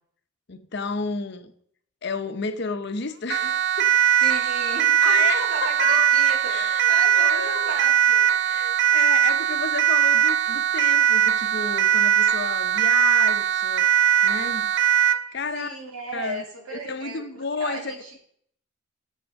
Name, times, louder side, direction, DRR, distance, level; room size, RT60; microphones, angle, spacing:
voice 1, 0.5-1.5 2.0-3.9 5.0-6.1 6.5-7.8 8.5-13.9 14.2-14.7 15.3-15.8 16.1-16.4 16.7-17.9, left 4 dB, 50° left, 9 dB, 0.7 m, -32 dB
Siren, 3.3-15.3, right 9 dB, 55° right, 0.4 m, -20 dB
voice 2, 4.2-6.6 6.9-8.3 15.5-18.2, right 2 dB, 85° right, 2 dB, 2.2 m, -34 dB
7.3 x 6.0 x 6.4 m, 0.64 s
head